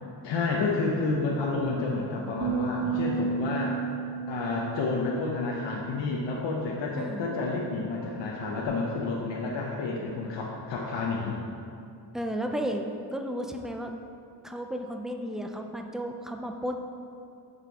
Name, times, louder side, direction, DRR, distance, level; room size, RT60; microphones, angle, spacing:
voice 1, 0.2-3.8 4.3-11.3, left 3 dB, 90° left, -3 dB, 1.0 m, -30 dB
sound 1, 2.4-8.7, right 5 dB, 40° right, 0.6 m, -34 dB
voice 2, 7.0-7.3 12.1-12.8 13.1-13.9 14.4-16.8, equal, ahead, 4 dB, 0.3 m, -33 dB
8.3 x 6.7 x 4.0 m, 2.5 s
wide cardioid pair, 175°, 43 cm